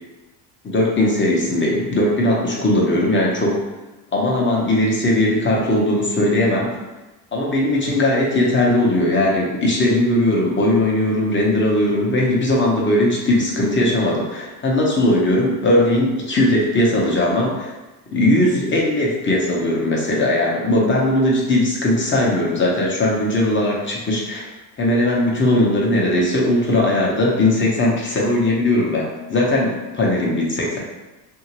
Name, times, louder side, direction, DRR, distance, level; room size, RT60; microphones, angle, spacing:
voice 1, 0.6-3.6 4.1-6.7 7.3-17.7 18.1-24.5 24.8-29.7 30.0-30.8, left 1 dB, 25° left, -3 dB, 0.9 m, -19 dB
2.8 x 2.7 x 2.9 m, 1.1 s
hypercardioid pair, 80°, 50 cm